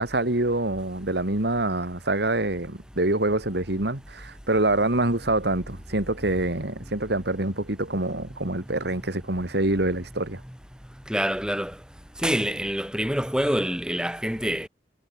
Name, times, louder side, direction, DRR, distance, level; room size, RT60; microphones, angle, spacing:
voice 1, 0.0-10.4, right 2 dB, 65° right, 2.8 m, -25 dB
voice 2, 11.1-11.8 12.2-14.7, equal, 5° right, 7.7 m, -26 dB
head